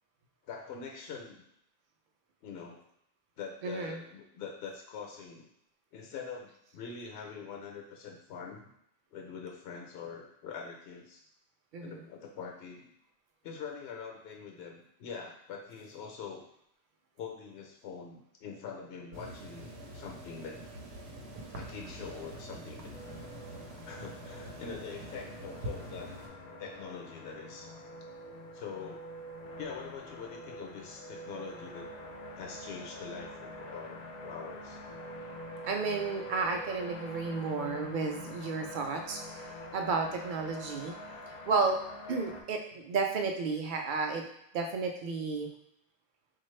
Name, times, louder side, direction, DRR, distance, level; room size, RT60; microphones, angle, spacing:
voice 1, 0.4-1.4 2.4-2.8 3.4-5.5 5.9-8.7 9.1-11.3 11.8-12.9 13.4-16.5 17.2-20.6 21.5-22.9 23.9-26.1 26.6-27.7 28.5-29.0 29.6-31.9 32.4-34.8, left 6 dB, 75° left, 1 dB, 0.8 m, -44 dB
voice 2, 3.6-4.0 11.7-12.0 35.6-40.9 41.5-41.8 42.1-44.2 44.5-45.5, right 4 dB, 60° right, 3 dB, 0.6 m, -32 dB
sound 1, 19.1-26.3, right 1 dB, 80° right, 0.9 m, -45 dB
sound 2, 22.9-42.4, left 1 dB, 55° left, 0.5 m, -45 dB
4.1 x 2.4 x 3.1 m, 0.77 s
omnidirectional pair, 1.1 m